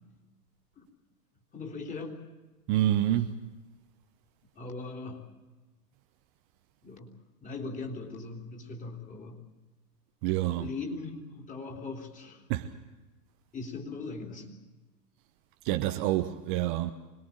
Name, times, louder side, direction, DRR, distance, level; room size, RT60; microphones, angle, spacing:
voice 1, 1.5-2.2 4.6-5.2 6.8-7.1 7.4-9.4 10.5-12.5 13.5-14.5, left 3 dB, 15° left, 3.6 m, -39 dB
voice 2, 2.7-3.3 10.2-10.7 12.5-12.7 15.6-16.9, right 13 dB, 30° right, 0.9 m, -27 dB
25.5 x 21.0 x 7.4 m
figure-of-eight pair, 105°, 49 cm